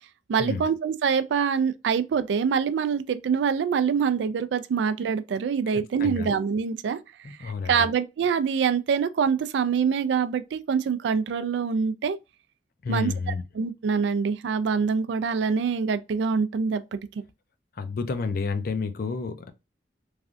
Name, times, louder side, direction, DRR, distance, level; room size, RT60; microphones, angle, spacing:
voice 1, 0.3-7.0 7.4-12.2 12.9-13.1 13.6-17.0, right 6 dB, 75° right, 0.3 m, -25 dB
voice 2, 5.7-6.3 7.2-7.9 12.8-13.4 17.8-19.5, left 4 dB, 55° left, 0.4 m, -30 dB
3.2 x 2.5 x 2.4 m
head